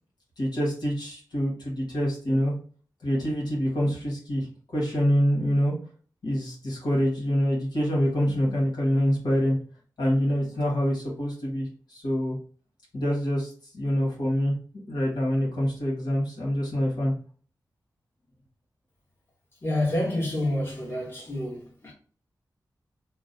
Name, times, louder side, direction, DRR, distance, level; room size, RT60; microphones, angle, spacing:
voice 1, 0.4-2.5 3.0-4.5 4.7-5.7 6.2-9.6 10.0-12.4 12.9-14.5 14.9-17.1, equal, 80° left, 1.5 m, -26 dB
voice 2, 19.6-21.9, left 1 dB, 30° left, 1.4 m, -28 dB
3.0 x 2.3 x 3.9 m
wide cardioid pair, 105°, 7 cm